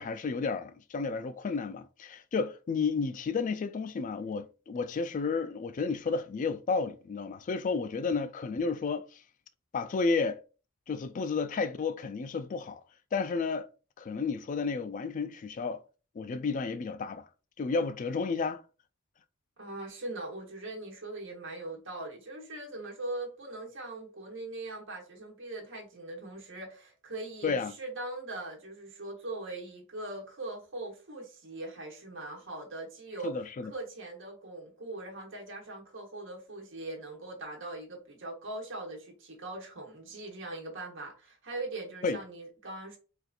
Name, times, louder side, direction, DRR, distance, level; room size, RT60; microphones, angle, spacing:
voice 1, 0.0-9.2 9.7-10.4 10.9-12.8 13.1-13.7 14.0-15.8 16.2-17.3 17.6-18.6 27.4-27.7 33.2-33.7 42.0-42.2, left 4 dB, 40° left, 0.3 m, -32 dB
voice 2, 19.6-33.4 33.7-43.0, right 2 dB, 60° right, 1.1 m, -41 dB
4.2 x 2.4 x 2.4 m
head